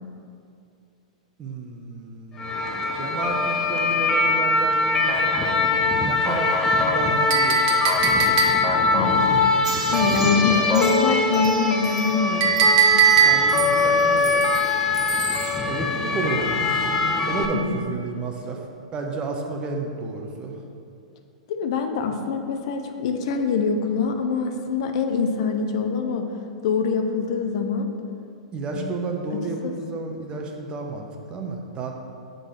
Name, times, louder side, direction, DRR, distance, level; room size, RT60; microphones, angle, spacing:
voice 1, 1.4-2.5 2.9-7.9 8.1-8.3 9.2-9.8 10.5-10.7 13.2-14.4 15.6-16.9 17.3-18.6 18.9-20.6 28.5-31.9, right 3 dB, 25° right, 2 dB, 0.9 m, -32 dB
sound 1, 2.4-17.5, left 3 dB, 20° left, 0.7 m, -22 dB
Chink clink, 7.3-8.9 12.4-13.7, right 6 dB, 50° right, 1.1 m, -19 dB
voice 2, 8.9-9.4 9.9-13.1 17.5-17.8 21.5-26.3 26.6-27.9 28.7-28.9 29.3-29.7, left 5 dB, 55° left, 5 dB, 0.6 m, -25 dB
sound 2, 9.6-15.6, right 4 dB, 75° right, 0.9 m, -34 dB
6.6 x 3.9 x 6.4 m, 2.5 s
figure-of-eight pair, 105°, 4 cm